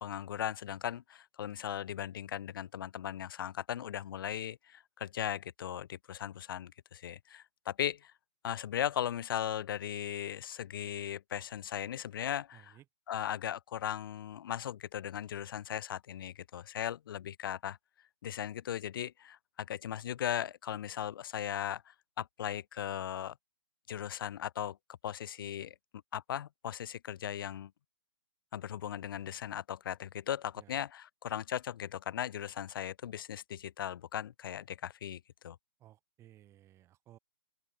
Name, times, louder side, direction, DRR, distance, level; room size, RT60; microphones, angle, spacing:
voice 1, 0.0-8.1 8.4-12.7 13.1-17.8 18.2-23.3 23.9-24.8 25.0-25.7 26.1-27.7 28.5-35.6, left 10 dB, 50° left, 0.6 m, -38 dB
voice 2, 12.5-12.9 30.6-30.8 35.8-37.2, right 13 dB, 20° right, 1.8 m, -58 dB
open air
figure-of-eight pair, 125°, 15 cm